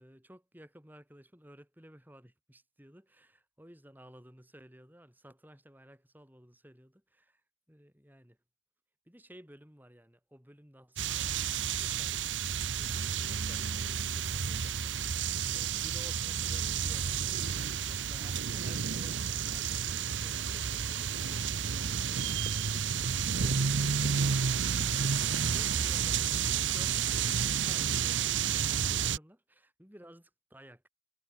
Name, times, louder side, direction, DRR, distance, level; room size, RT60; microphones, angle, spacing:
voice 1, 0.0-7.4 7.7-8.4 9.1-11.3 11.8-12.2 12.8-14.9 15.5-30.9, equal, 10° right, 3.9 m, -55 dB
sound 1, 11.0-29.2, right 7 dB, 85° right, 0.8 m, -31 dB
sound 2, 15.5-27.1, left 1 dB, 70° left, 6.4 m, -51 dB
head